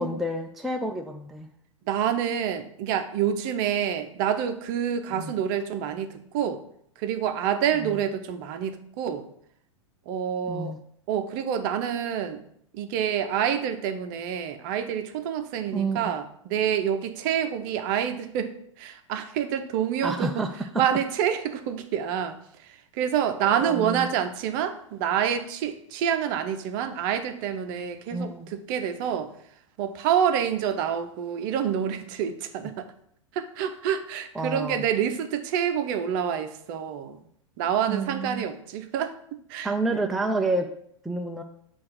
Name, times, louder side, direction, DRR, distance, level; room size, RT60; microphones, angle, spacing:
voice 1, 0.0-1.5 5.2-5.3 7.8-8.0 10.5-10.8 15.7-16.1 20.0-20.5 23.5-24.1 28.1-28.5 34.4-34.8 37.9-38.4 39.6-40.7 41.0-41.4, right 2 dB, ahead, 2 dB, 0.4 m, -29 dB
voice 2, 1.9-6.6 7.0-9.3 10.1-10.7 11.1-12.4 12.7-20.5 20.7-22.4 22.7-29.3 29.8-32.9 33.3-37.2 37.6-39.7, right 9 dB, 40° right, 8 dB, 0.7 m, -27 dB
7.5 x 2.5 x 5.8 m, 0.67 s
figure-of-eight pair, 100°, 16 cm